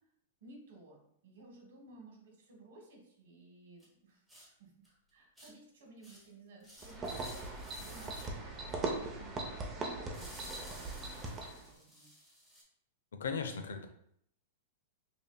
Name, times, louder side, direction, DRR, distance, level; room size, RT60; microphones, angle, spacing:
voice 1, 0.4-7.5 7.8-9.4 9.8-12.1, right 2 dB, 70° right, 0 dB, 1.4 m, -57 dB
sound 1, 3.8-3.9 4.3-4.5 4.8-4.9 5.4-5.5 6.0-6.3 6.6-8.3 10.1-12.6, equal, ahead, 1.2 m, -54 dB
sound 2, 6.8-11.7, right 2 dB, 20° right, 0.6 m, -40 dB
voice 2, 13.1-13.9, left 5 dB, 90° left, 7 dB, 0.5 m, -37 dB
5.1 x 2.7 x 2.2 m, 0.70 s
hypercardioid pair, 145°, 0 cm